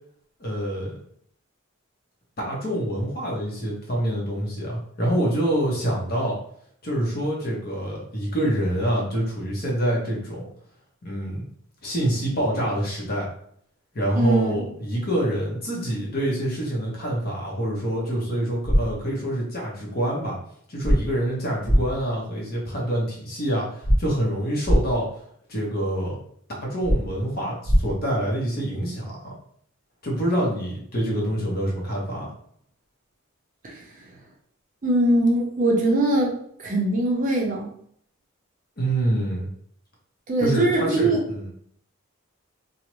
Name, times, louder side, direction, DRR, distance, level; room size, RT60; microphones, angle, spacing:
voice 1, 0.4-1.0 2.4-6.4 6.8-10.5 11.0-11.4 11.8-13.3 13.9-20.4 20.7-25.1 25.5-26.2 26.6-29.3 30.0-32.3 38.8-39.5 40.4-41.5, right 1 dB, 45° left, -3 dB, 0.8 m, -26 dB
voice 2, 14.1-14.7 33.6-34.1 34.8-36.3 36.6-37.7 40.3-41.2, right 1 dB, 40° right, -1 dB, 0.5 m, -22 dB
sound 1, 18.7-18.8 20.8-21.0 21.7-21.8 23.8-24.0 24.7-24.8 26.8-27.0 27.7-27.8, equal, 65° left, 1.1 m, -17 dB
2.5 x 2.0 x 3.0 m, 0.64 s
head